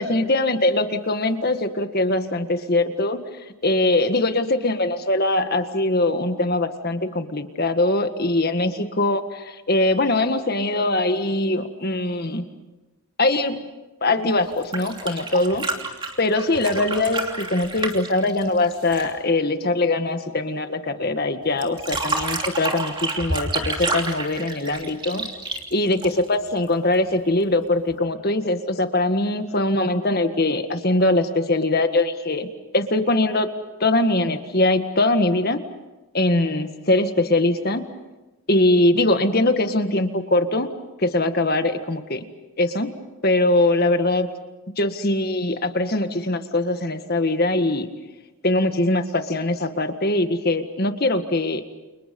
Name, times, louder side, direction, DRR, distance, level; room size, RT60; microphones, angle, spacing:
voice 1, 0.0-3.2 3.6-12.4 13.2-13.6 14.0-15.6 16.2-25.3 25.7-33.5 33.8-35.6 36.1-37.8 38.5-40.7 41.0-42.2 42.6-42.9 43.2-44.4 44.8-47.9 48.4-51.6, left 2 dB, 45° left, 8 dB, 1.7 m, -22 dB
sound 1, 14.5-19.2 21.6-26.5 27.9-28.0, right 3 dB, 20° right, 3.0 m, -29 dB
29.5 x 29.5 x 5.4 m, 1.1 s
head